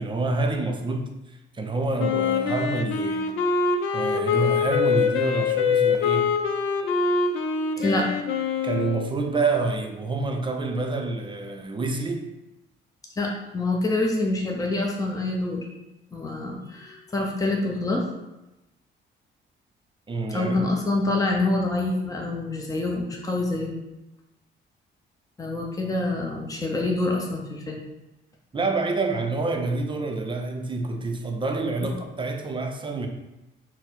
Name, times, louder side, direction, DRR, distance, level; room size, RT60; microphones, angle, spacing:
voice 1, 0.0-3.3 3.9-6.3 7.8-8.0 8.6-12.3 20.1-20.6 28.5-33.1, right 3 dB, 25° right, 0.5 m, -27 dB
Wind instrument woodwind instrument, 2.0-9.1, left 5 dB, 85° left, 0.4 m, -24 dB
voice 2, 13.1-15.7 16.1-18.1 20.3-23.8 25.4-27.8 31.8-31.9, left 2 dB, 15° left, 0.7 m, -26 dB
4.2 x 2.1 x 4.2 m
cardioid pair, 90°, 20 cm